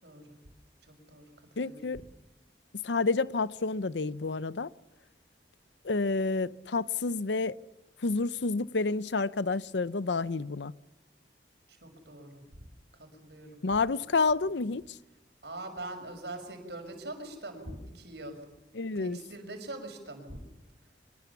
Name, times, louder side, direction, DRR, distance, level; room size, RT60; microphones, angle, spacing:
voice 1, 0.8-1.3 1.6-1.8 11.7-12.7 13.0-13.6 14.0-14.1 14.5-14.6 15.4-18.4 18.9-20.4, right 2 dB, 75° right, 6.0 m, -43 dB
voice 2, 1.6-2.1 2.8-4.7 5.8-7.6 8.0-10.7 13.6-14.8 18.8-19.2, left 3 dB, 85° left, 0.7 m, -29 dB
24.0 x 23.0 x 7.1 m
head